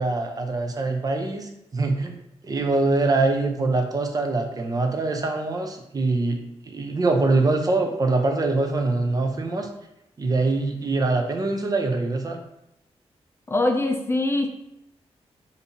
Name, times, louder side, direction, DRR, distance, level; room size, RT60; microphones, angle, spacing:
voice 1, 0.0-9.7 10.2-12.4, right 3 dB, 35° right, 4 dB, 0.5 m, -24 dB
voice 2, 13.5-14.7, left 2 dB, 20° left, 4 dB, 0.3 m, -23 dB
3.9 x 2.6 x 2.8 m, 0.81 s
wide cardioid pair, 100°, 11 cm